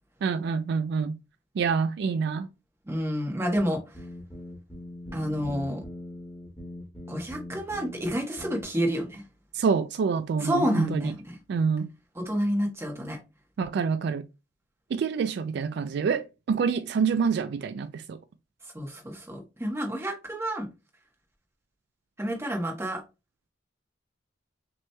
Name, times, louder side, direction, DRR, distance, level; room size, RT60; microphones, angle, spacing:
voice 1, 0.2-1.2 1.6-2.5 9.5-11.1 11.5-11.9 13.6-14.2 14.9-18.2, right 5 dB, 60° right, 0.3 m, -27 dB
voice 2, 2.9-3.8 5.1-5.8 7.1-9.2 10.4-11.4 12.1-13.2 18.7-20.7 22.2-23.0, equal, 15° right, 1.0 m, -29 dB
sound 1, 3.6-8.1 8.4-8.6, left 1 dB, 10° left, 1.6 m, -41 dB
6.0 x 3.0 x 2.2 m
head